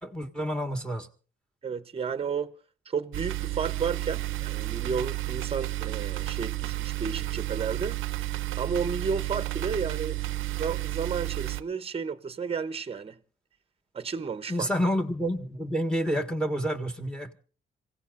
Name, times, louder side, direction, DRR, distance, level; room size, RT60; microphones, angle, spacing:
voice 1, 0.0-1.1 14.5-17.3, equal, 5° left, 1.6 m, -29 dB
voice 2, 1.6-2.5 2.9-8.0 8.5-10.2 10.6-13.2 13.9-14.7, right 6 dB, 30° right, 0.9 m, -32 dB
sound 1, 3.1-11.6, right 17 dB, 85° right, 0.7 m, -32 dB
26.0 x 16.5 x 2.5 m
cardioid pair, 90°, 20 cm